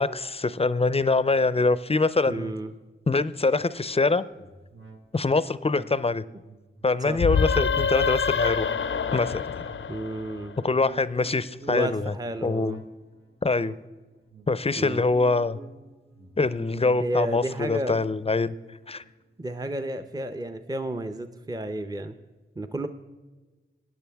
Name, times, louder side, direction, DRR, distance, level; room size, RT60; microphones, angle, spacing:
voice 1, 0.0-2.5 3.1-4.2 5.1-6.2 6.8-8.7 9.1-9.6 10.6-12.1 12.4-12.8 13.4-13.7 14.5-15.6 16.4-18.5 18.9-19.0, left 3 dB, 30° left, 16 dB, 0.5 m, -24 dB
voice 2, 2.3-2.7 7.1-7.2 9.9-10.5 11.7-12.8 14.8-15.1 17.0-18.0 19.4-22.2 22.6-22.9, right 1 dB, 20° right, 9 dB, 0.6 m, -31 dB
sound 1, 4.3-20.1 20.5-20.6, right 3 dB, 85° right, 1.4 m, -50 dB
sound 2, 7.1-10.8, left 6 dB, 75° left, 0.6 m, -26 dB
17.0 x 9.7 x 3.5 m, 1.2 s
cardioid pair, 55°, 21 cm